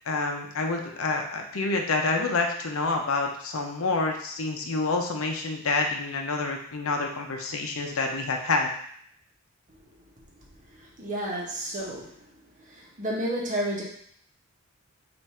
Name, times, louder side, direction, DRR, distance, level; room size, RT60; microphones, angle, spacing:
voice 1, 0.1-8.7, left 3 dB, 80° left, 2 dB, 0.6 m, -28 dB
voice 2, 10.8-12.1 12.7-13.8, right 1 dB, 40° right, -3 dB, 1.0 m, -31 dB
3.5 x 2.6 x 4.2 m, 0.63 s
head